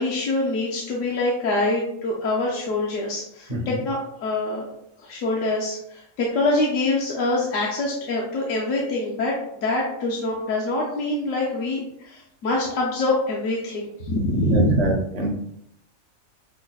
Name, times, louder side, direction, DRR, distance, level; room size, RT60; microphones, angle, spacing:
voice 1, 0.0-4.7 5.0-9.3 9.6-14.9, left 2 dB, 70° left, -3 dB, 0.9 m, -25 dB
voice 2, 3.5-3.8 14.5-15.3, right 1 dB, 55° right, 0 dB, 0.4 m, -25 dB
5.5 x 2.0 x 2.2 m, 0.75 s
omnidirectional pair, 1.4 m